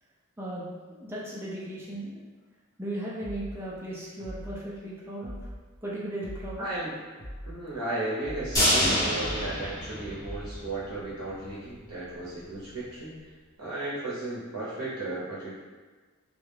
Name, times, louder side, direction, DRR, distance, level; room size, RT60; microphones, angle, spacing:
voice 1, 0.4-2.2 2.8-5.3 5.8-6.7, right 1 dB, 10° right, -6 dB, 0.4 m, -36 dB
sound 1, 3.2-3.6 4.2-4.6 5.2-5.6 6.2-6.6 7.2-7.6 8.2-8.6 9.2-9.6 10.2-10.6, equal, 70° left, 0.8 m, -41 dB
voice 2, 6.6-6.9 7.4-13.3 13.6-15.5, right 2 dB, 90° right, -7 dB, 0.6 m, -35 dB
sound 2, 8.5-10.7 11.0-11.1 11.5-11.6, left 1 dB, 15° left, 0.7 m, -26 dB
2.3 x 2.0 x 3.1 m, 1.4 s
head